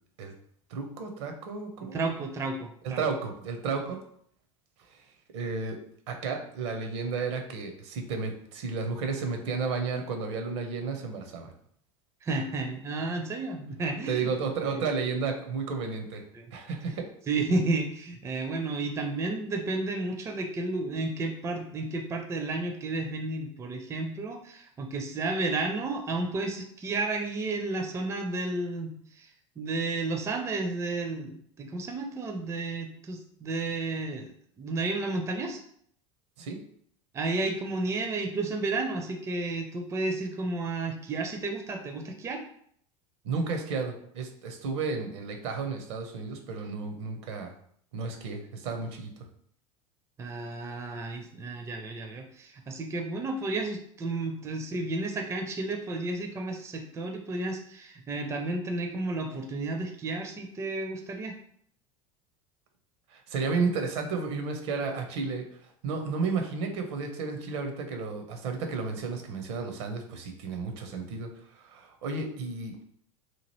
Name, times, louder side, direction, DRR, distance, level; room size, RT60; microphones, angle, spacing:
voice 1, 0.7-2.0 2.8-4.0 4.9-5.0 5.3-5.8 6.1-11.5 14.1-16.2 16.5-17.0 36.4-36.6 43.2-47.5 47.9-49.1 63.1-65.4 65.8-71.3 71.5-72.8, right 4 dB, 60° right, 5 dB, 0.6 m, -32 dB
voice 2, 1.9-3.0 12.2-14.3 14.6-14.8 16.3-16.5 17.3-29.3 29.6-35.6 37.1-42.4 50.2-61.4, right 2 dB, 15° right, 4 dB, 0.4 m, -32 dB
2.9 x 2.4 x 3.0 m, 0.64 s
figure-of-eight pair, 80°, 16 cm